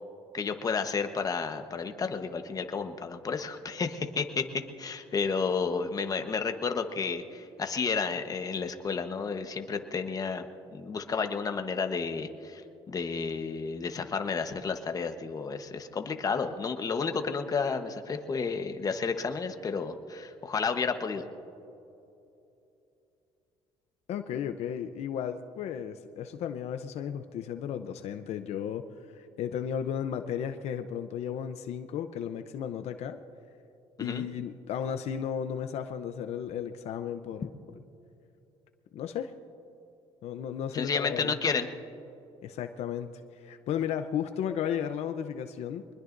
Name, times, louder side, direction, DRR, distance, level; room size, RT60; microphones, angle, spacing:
voice 1, 0.3-4.4 4.8-10.4 10.7-12.6 12.9-21.2 34.0-34.2 40.7-41.7, left 5 dB, 30° left, 7 dB, 1.1 m, -31 dB
voice 2, 24.1-28.8 29.1-33.2 34.0-37.5 38.9-39.3 40.2-41.4 42.4-43.1 43.4-45.8, left 9 dB, 70° left, 8 dB, 0.7 m, -34 dB
24.0 x 20.5 x 2.6 m, 2.8 s
cardioid pair, 105°, 12 cm